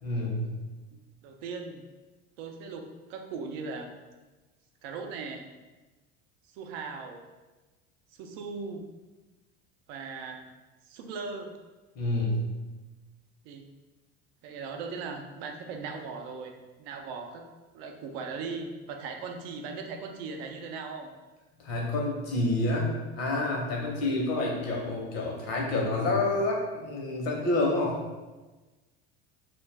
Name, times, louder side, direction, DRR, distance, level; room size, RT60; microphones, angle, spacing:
voice 1, 0.0-0.5 11.9-12.4 21.6-28.0, left 2 dB, 55° left, -1 dB, 0.9 m, -28 dB
voice 2, 1.2-1.8 2.4-3.9 4.8-5.5 6.5-7.2 8.2-8.8 9.9-10.4 10.9-11.5 13.4-13.7 14.4-16.5 16.8-17.5 17.7-21.1, right 4 dB, 70° right, 3 dB, 0.5 m, -38 dB
2.4 x 2.2 x 3.3 m, 1.2 s
hypercardioid pair, 90°, 30 cm